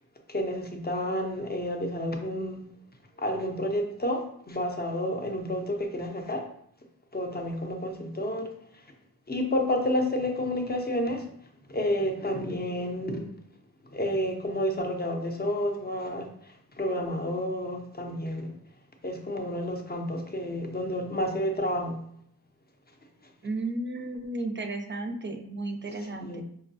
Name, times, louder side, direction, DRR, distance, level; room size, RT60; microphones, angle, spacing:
voice 1, 0.3-2.6 3.2-6.5 7.1-8.8 9.3-11.3 11.7-13.3 13.9-18.5 19.0-22.0 26.0-26.4, left 1 dB, 25° left, 2 dB, 0.7 m, -30 dB
voice 2, 23.4-26.4, right 2 dB, 30° right, 4 dB, 0.5 m, -33 dB
5.2 x 2.2 x 2.7 m, 0.68 s
cardioid pair, 60°, 39 cm